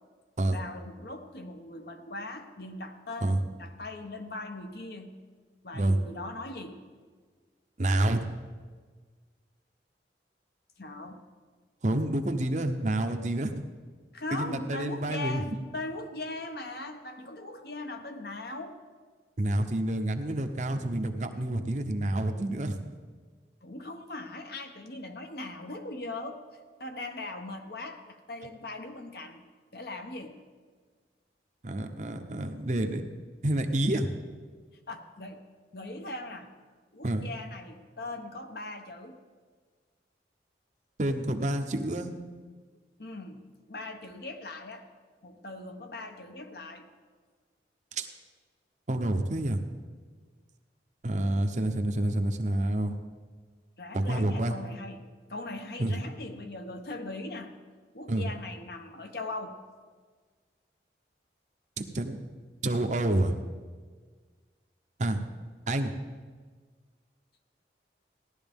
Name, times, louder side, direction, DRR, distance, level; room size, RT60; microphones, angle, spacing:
voice 1, 0.5-5.2 5.6-6.8 10.8-11.2 14.1-18.8 23.6-26.4 26.8-29.4 29.7-30.4 34.9-35.4 35.7-36.5 36.9-39.2 43.0-44.9 45.2-46.9 53.8-55.0 55.3-57.5 57.9-59.6, left 2 dB, 55° left, 6 dB, 0.9 m, -40 dB
voice 2, 7.8-8.2 11.8-13.6 14.3-15.4 19.4-22.8 31.6-33.0 33.4-34.1 37.0-37.2 41.0-42.1 47.9-48.1 48.9-49.6 51.0-53.0 53.9-54.5 55.8-55.9 58.1-58.2 61.8-62.2 62.6-63.3 65.0-65.2 65.7-65.9, right 1 dB, 40° right, 6 dB, 0.8 m, -28 dB
16.0 x 11.5 x 3.6 m, 1.5 s
head